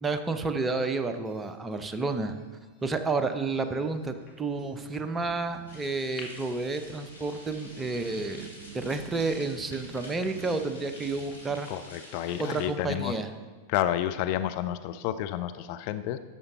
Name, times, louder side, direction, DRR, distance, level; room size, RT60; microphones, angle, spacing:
voice 1, 0.0-2.4 2.8-8.5 8.7-11.7 12.5-13.3, right 3 dB, 15° right, 8 dB, 0.7 m, -30 dB
sound 1, 0.6-13.2, left 3 dB, 20° left, 1.9 m, -55 dB
sound 2, 2.8-11.7, right 6 dB, 70° right, 0.5 m, -50 dB
sound 3, 5.7-12.7, left 1 dB, 85° left, 2.4 m, -49 dB
voice 2, 11.7-13.2 13.7-16.2, left 12 dB, 45° left, 10 dB, 0.4 m, -30 dB
11.5 x 7.1 x 4.0 m, 1.3 s
figure-of-eight pair, 90°, 0 cm